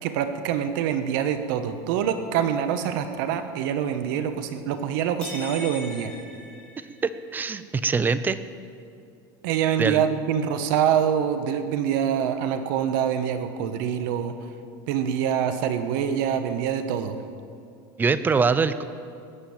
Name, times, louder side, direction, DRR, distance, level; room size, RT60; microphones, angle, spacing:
voice 1, 0.0-6.1 9.4-14.3 14.9-17.2, right 8 dB, 70° right, 9 dB, 1.2 m, -25 dB
sound 1, 5.2-7.3, left 3 dB, 10° left, 4.9 m, -40 dB
voice 2, 7.0-8.4 9.8-10.0 18.0-18.8, right 5 dB, 15° right, 14 dB, 0.6 m, -23 dB
20.5 x 7.5 x 8.8 m, 2.4 s
supercardioid pair, 140°, 11 cm